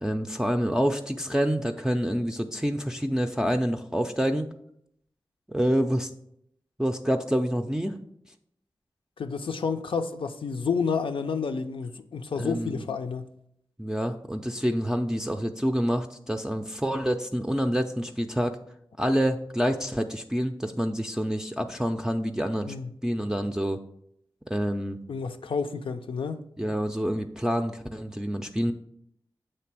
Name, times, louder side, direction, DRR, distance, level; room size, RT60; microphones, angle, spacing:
voice 1, 0.0-4.5 5.5-6.1 6.8-8.0 12.4-12.8 13.8-18.6 19.0-22.7 23.0-23.8 24.5-25.0 26.6-28.7, equal, 5° right, 0.4 m, -27 dB
voice 2, 9.2-13.3 22.6-22.9 25.1-26.4, left 5 dB, 80° left, 0.5 m, -30 dB
7.6 x 3.2 x 6.0 m
wide cardioid pair, 70°, 9 cm